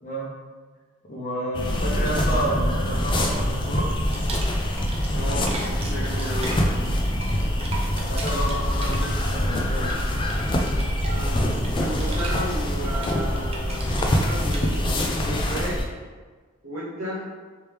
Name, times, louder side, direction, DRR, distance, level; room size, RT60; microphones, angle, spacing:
voice 1, 0.0-0.3 1.0-3.9 7.9-10.1, equal, 40° left, -4 dB, 1.0 m, -30 dB
sound 1, 1.5-15.9, equal, 25° left, 0.4 m, -24 dB
sound 2, 4.1-5.2 5.5-15.0, right 3 dB, 30° right, 0.6 m, -38 dB
voice 2, 5.1-6.6 11.1-11.5 11.8-13.9 14.2-15.8 16.6-17.2, equal, 80° right, -10 dB, 1.0 m, -33 dB
3.3 x 3.0 x 3.3 m, 1.4 s
head